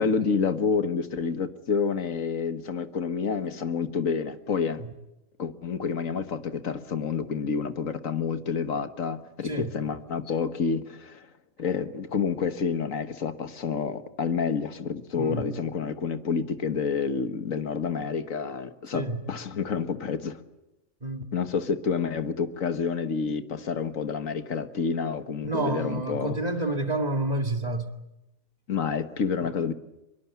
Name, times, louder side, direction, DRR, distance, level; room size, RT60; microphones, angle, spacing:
voice 1, 0.0-4.8 5.4-11.3 11.6-20.4 21.3-26.4 28.7-29.7, left 5 dB, 80° left, 1.8 m, -29 dB
voice 2, 25.4-27.9, right 2 dB, 30° right, 2.2 m, -29 dB
24.5 x 22.0 x 8.4 m
omnidirectional pair, 1.4 m